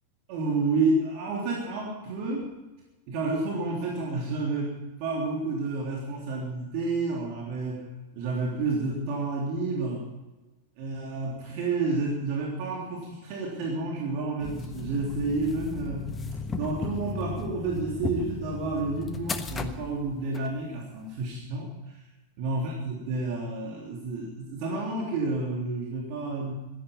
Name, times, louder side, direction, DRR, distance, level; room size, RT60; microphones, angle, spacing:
voice 1, 0.3-2.4 3.1-7.8 8.1-10.1 10.8-16.0 16.5-22.0 22.4-26.5, right 3 dB, 45° right, -2 dB, 3.3 m, -30 dB
sound 1, 14.4-20.5, left 4 dB, 15° left, 1.2 m, -36 dB
16.5 x 13.5 x 5.5 m, 1.1 s
figure-of-eight pair, 90°, 0 cm